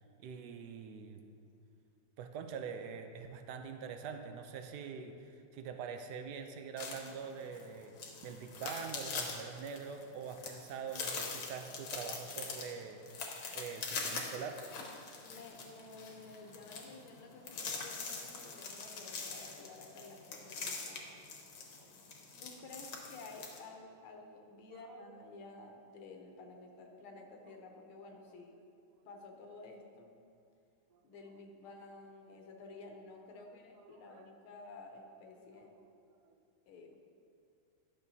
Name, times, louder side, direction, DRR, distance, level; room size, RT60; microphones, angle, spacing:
voice 1, 0.2-1.2 2.2-7.9 8.2-13.0 13.5-14.6 20.6-20.7 21.0-21.1 21.8-21.9 22.3-22.4 24.7-25.0 28.3-28.4 30.9-31.0 33.4-33.5 33.8-34.3 35.4-35.6 36.2-36.3, right 6 dB, 75° right, 6 dB, 0.9 m, -45 dB
sound 1, 6.8-23.6, left 4 dB, 70° left, 1.7 m, -43 dB
voice 2, 15.2-21.1 22.4-28.6 29.1-30.2 31.0-35.7 36.7-37.1, left 3 dB, 85° left, 2 dB, 1.7 m, -52 dB
12.0 x 6.8 x 2.7 m, 2.5 s
omnidirectional pair, 2.3 m